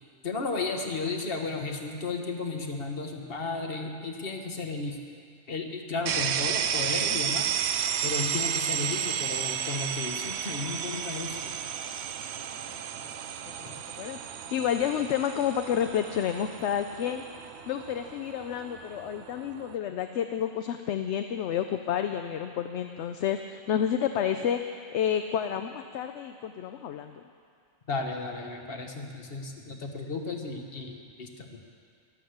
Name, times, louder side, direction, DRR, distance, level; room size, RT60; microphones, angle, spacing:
voice 1, 0.2-5.0 5.5-7.5 8.0-11.6 27.9-31.6, left 3 dB, 45° left, 3 dB, 1.5 m, -34 dB
sound 1, 6.1-19.8, right 8 dB, 65° right, 0.8 m, -33 dB
voice 2, 12.7-13.1 13.6-17.2 17.7-27.2, left 9 dB, 65° left, 7 dB, 0.8 m, -30 dB
12.5 x 11.5 x 7.9 m, 2.2 s
omnidirectional pair, 1.4 m